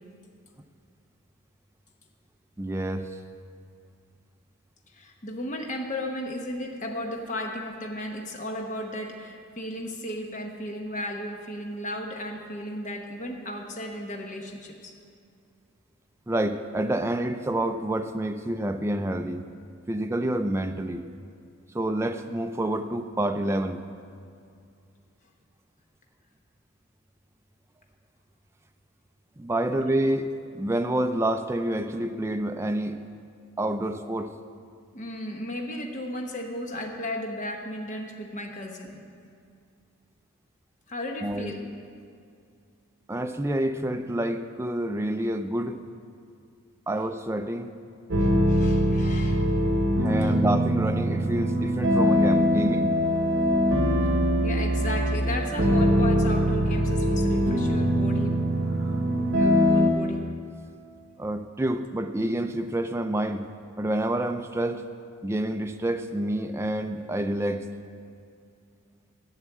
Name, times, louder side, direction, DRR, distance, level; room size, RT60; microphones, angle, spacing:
voice 1, 2.6-3.2 16.3-19.5 19.9-21.1 21.7-23.9 29.4-33.0 33.6-34.4 41.2-41.5 43.1-45.8 46.9-47.7 50.0-53.0 58.8-58.9 61.2-63.5 63.8-64.8 65.2-67.7, right 1 dB, 15° right, 7 dB, 0.3 m, -28 dB
voice 2, 4.9-15.0 29.7-29.8 34.9-39.0 40.9-41.6 48.2-49.5 50.2-50.4 54.4-58.4 59.3-60.3, left 1 dB, 35° left, 2 dB, 0.9 m, -35 dB
sound 1, 48.1-59.9, equal, 80° right, 1.1 m, -23 dB
8.0 x 7.3 x 8.3 m, 2.4 s
head